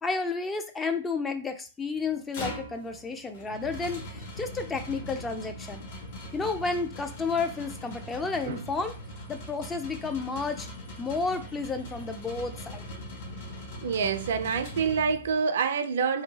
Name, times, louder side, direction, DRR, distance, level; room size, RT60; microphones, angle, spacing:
voice 1, 0.0-5.9 6.3-8.9 9.3-10.7 11.0-12.9, left 4 dB, 15° left, 0.3 m, -31 dB
sound 1, 2.0-15.5, left 1 dB, 55° left, 0.9 m, -41 dB
voice 2, 13.8-16.2, right 6 dB, 60° right, 0.4 m, -27 dB
2.7 x 2.2 x 2.8 m
figure-of-eight pair, 110°, 0 cm